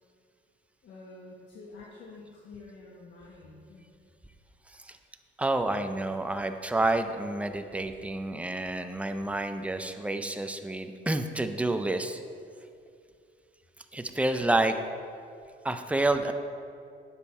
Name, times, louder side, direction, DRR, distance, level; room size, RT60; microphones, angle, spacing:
voice 1, 0.8-3.9, left 3 dB, 70° left, -4 dB, 1.3 m, -48 dB
voice 2, 5.4-12.2 13.9-14.8 15.6-16.3, right 2 dB, 5° right, 7 dB, 0.5 m, -29 dB
10.0 x 7.3 x 4.2 m, 2.4 s
cardioid pair, 125°, 19 cm